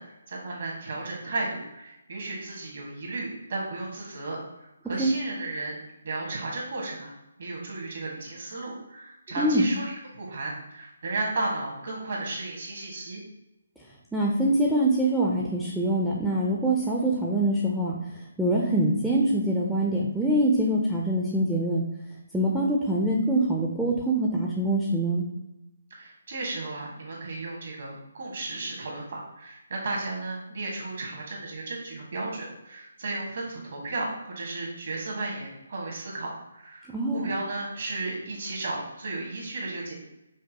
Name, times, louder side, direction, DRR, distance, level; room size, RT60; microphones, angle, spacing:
voice 1, 0.0-4.4 4.8-5.8 6.0-7.1 7.4-13.2 25.9-34.1 34.3-40.0, right 2 dB, 60° right, -2 dB, 1.3 m, -34 dB
voice 2, 9.4-9.7 14.1-21.8 22.3-25.3 36.9-37.3, right 1 dB, ahead, -5 dB, 0.4 m, -24 dB
5.2 x 2.2 x 2.8 m, 0.93 s
hypercardioid pair, 155°, 0 cm